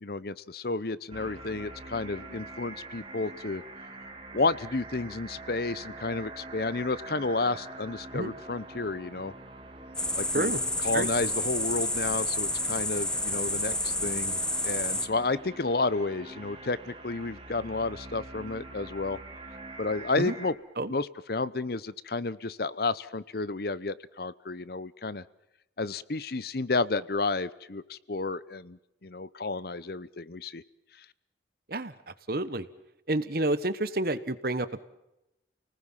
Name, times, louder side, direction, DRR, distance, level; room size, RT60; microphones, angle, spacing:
voice 1, 0.0-3.6 4.3-9.3 10.1-10.5 10.8-19.2 19.8-20.5 20.9-25.2 25.8-30.6, left 3 dB, 55° left, 18 dB, 0.8 m, -31 dB
sound 1, 1.1-20.5, right 2 dB, 30° right, 3.0 m, -45 dB
sound 2, 10.0-15.1, left 1 dB, 5° left, 0.8 m, -30 dB
voice 2, 32.3-32.7 33.1-34.8, right 2 dB, 55° right, 14 dB, 1.3 m, -29 dB
29.5 x 19.5 x 7.4 m, 0.90 s
head